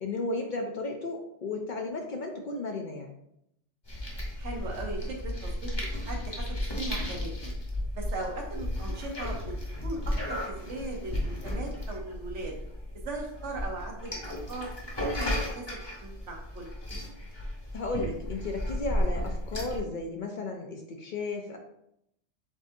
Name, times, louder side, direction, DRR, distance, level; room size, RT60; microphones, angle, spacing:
voice 1, 0.0-3.2 17.7-21.6, left 2 dB, 55° left, 2 dB, 0.6 m, -34 dB
sound 1, 3.8-19.8, left 1 dB, 25° left, 1.0 m, -34 dB
voice 2, 4.4-7.5 7.9-9.5 9.8-12.5 13.0-14.2 14.5-14.7 15.0-16.7, right 2 dB, 85° right, 1 dB, 1.3 m, -39 dB
7.2 x 2.6 x 2.6 m, 0.78 s
omnidirectional pair, 1.2 m